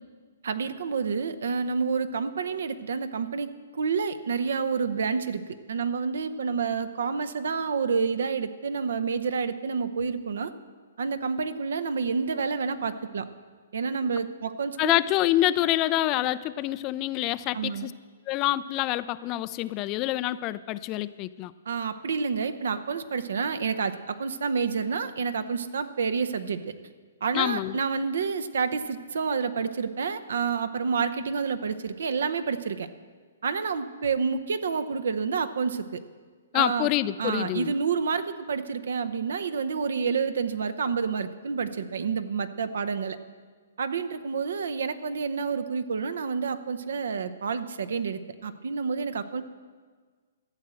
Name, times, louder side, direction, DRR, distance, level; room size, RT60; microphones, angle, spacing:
voice 1, 0.4-10.5 11.0-13.3 13.7-14.9 17.5-17.9 21.7-26.7 27.2-32.9 33.4-36.0 36.5-36.9 37.2-43.2 43.8-49.4, right 5 dB, 75° right, 12 dB, 0.8 m, -29 dB
voice 2, 14.8-17.9 18.3-21.5 27.3-27.8 36.5-37.7, left 15 dB, 30° left, 16 dB, 0.4 m, -26 dB
13.0 x 7.6 x 7.6 m, 1.5 s
hypercardioid pair, 140°, 0 cm